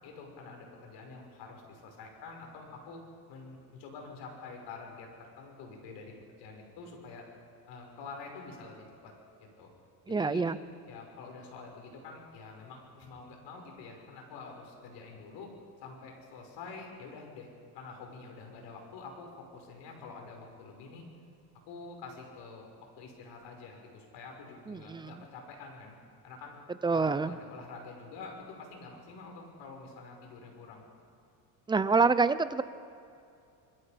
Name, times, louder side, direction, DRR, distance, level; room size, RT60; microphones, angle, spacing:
voice 1, 0.0-3.0 3.3-5.1 5.4-7.3 7.7-9.1 9.6-9.7 10.1-10.4 10.9-15.5 15.8-17.5 17.7-21.0 21.7-22.7 23.0-26.0 26.2-26.6 26.9-30.8, left 4 dB, 70° left, 2 dB, 5.9 m, -47 dB
voice 2, 10.1-10.6 24.7-25.1 26.8-27.4 31.7-32.6, right 4 dB, 10° right, 14 dB, 0.5 m, -26 dB
25.5 x 21.5 x 5.2 m, 2.6 s
cardioid pair, 140°, 43 cm